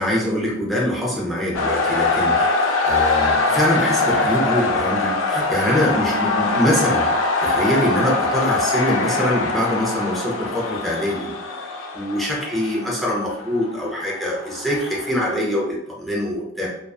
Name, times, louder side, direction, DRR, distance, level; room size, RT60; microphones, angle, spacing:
voice 1, 0.0-7.1 7.4-11.3 11.9-16.7, equal, ahead, -5 dB, 0.5 m, -23 dB
sound 1, 1.5-15.3, left 3 dB, 85° left, 0.4 m, -23 dB
2.5 x 2.2 x 2.3 m, 0.80 s
head